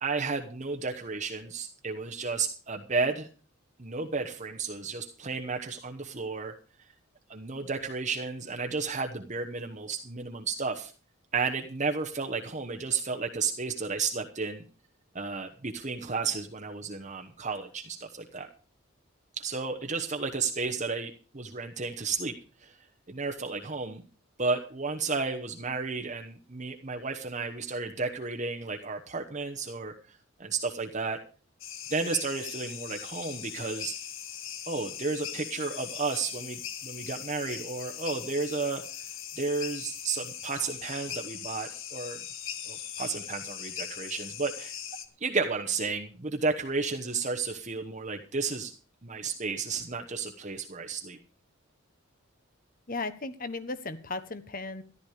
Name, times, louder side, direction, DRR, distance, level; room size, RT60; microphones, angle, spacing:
voice 1, 0.0-3.3 3.8-6.6 7.3-10.9 11.3-14.6 15.1-18.5 19.3-22.8 23.1-24.0 24.4-29.9 30.4-31.2 31.9-34.0 34.7-38.8 39.4-42.2 42.7-44.7 45.2-48.7 49.0-51.2, right 4 dB, 35° right, 3 dB, 1.1 m, -32 dB
sound 1, 31.6-45.1, left 9 dB, 70° left, 1.5 m, -40 dB
voice 2, 52.9-54.8, left 3 dB, 40° left, 12 dB, 1.2 m, -36 dB
13.5 x 12.0 x 4.9 m, 0.36 s
head